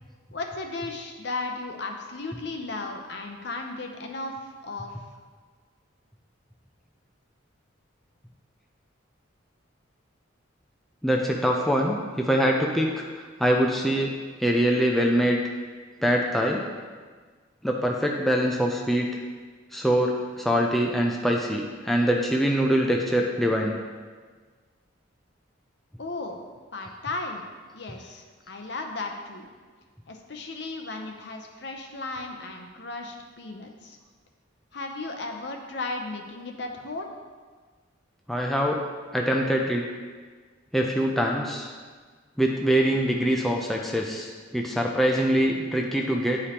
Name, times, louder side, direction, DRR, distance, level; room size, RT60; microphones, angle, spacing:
voice 1, 0.3-4.9 26.0-26.4 26.7-27.4 27.7-29.5 30.1-34.0 34.7-37.1, left 3 dB, 60° left, 3 dB, 0.7 m, -35 dB
voice 2, 11.0-14.1 14.4-15.4 16.0-16.6 17.6-19.1 19.7-23.7 38.3-38.8 39.1-39.8 40.7-41.7 42.4-46.4, equal, ahead, -1 dB, 0.4 m, -24 dB
9.6 x 5.0 x 2.9 m, 1.5 s
head